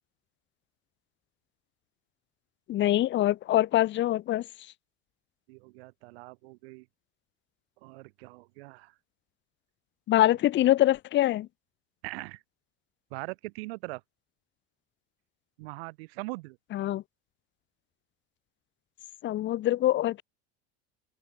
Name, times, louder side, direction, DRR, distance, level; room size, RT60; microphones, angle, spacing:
voice 1, 2.7-4.4 10.1-11.5 16.7-17.0 19.2-20.2, left 14 dB, 35° left, 2.0 m, -24 dB
voice 2, 5.5-6.9 7.8-8.9 12.0-12.4 13.1-14.0 15.6-16.6, right 24 dB, 80° right, 5.7 m, -41 dB
open air
cardioid pair, 150°, 30 cm